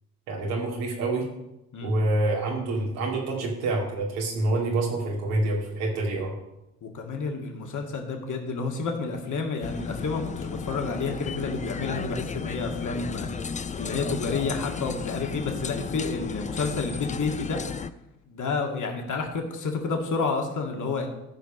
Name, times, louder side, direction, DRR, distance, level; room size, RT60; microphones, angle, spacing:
voice 1, 0.3-1.3 1.8-6.4, right 2 dB, 80° right, -2 dB, 2.7 m, -27 dB
voice 2, 6.8-13.3 13.8-17.6 18.3-21.1, left 4 dB, 45° left, 2 dB, 2.1 m, -30 dB
sound 1, 9.6-17.9, left 5 dB, 20° left, 0.5 m, -34 dB
13.5 x 5.2 x 5.4 m, 0.89 s
hypercardioid pair, 55°, 42 cm